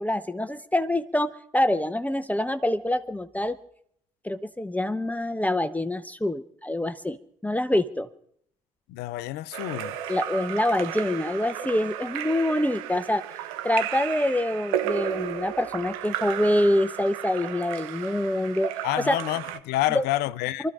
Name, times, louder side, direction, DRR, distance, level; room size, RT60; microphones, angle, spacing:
voice 1, 0.0-3.6 4.2-7.2 7.4-8.1 10.1-13.2 13.6-18.7 19.0-19.2 19.9-20.0 20.6-20.7, left 1 dB, 10° left, 0.8 m, -25 dB
voice 2, 8.9-9.9 18.8-20.7, left 15 dB, 65° left, 0.6 m, -28 dB
Splash splatter / Drip / Trickle dribble, 9.5-19.6, right 11 dB, 75° right, 0.9 m, -34 dB
27.5 x 13.5 x 2.5 m
figure-of-eight pair, 45°, 18 cm